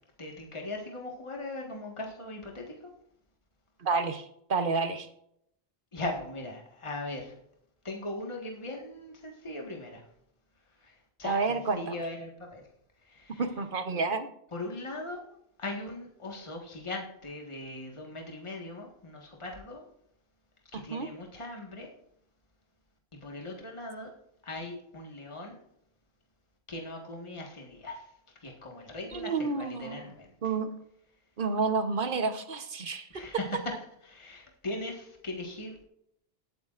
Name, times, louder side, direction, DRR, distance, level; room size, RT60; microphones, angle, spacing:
voice 1, 0.2-2.9 5.9-7.3 7.8-10.0 10.8-12.6 13.0-13.4 14.5-15.2 15.6-19.8 20.7-21.9 23.1-24.1 24.4-25.6 26.7-28.0 28.4-30.3 33.1-33.6 34.0-35.8, left 2 dB, 30° left, 0 dB, 1.7 m, -39 dB
voice 2, 3.8-5.1 11.2-12.0 13.4-14.3 20.7-21.1 29.1-30.1 30.4-30.7 31.4-33.2, right 4 dB, 55° right, 8 dB, 1.1 m, -30 dB
19.0 x 8.5 x 2.5 m, 0.74 s
omnidirectional pair, 1.0 m